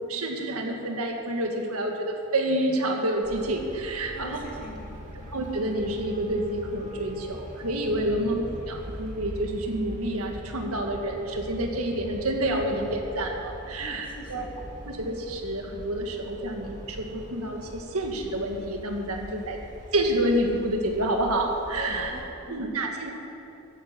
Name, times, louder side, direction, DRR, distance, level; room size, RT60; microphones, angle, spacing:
voice 1, 0.0-4.4 5.3-14.4 14.9-19.6 19.9-22.1 22.5-23.1, right 1 dB, 85° right, 2 dB, 1.8 m, -28 dB
Traffic noise roadway noise, 3.2-22.2, equal, 35° right, 2.0 m, -42 dB
voice 2, 4.1-5.2 13.8-14.5 19.3-19.5 21.8-22.7, left 1 dB, 40° left, -2 dB, 2.5 m, -43 dB
14.0 x 10.5 x 6.0 m, 3.0 s
head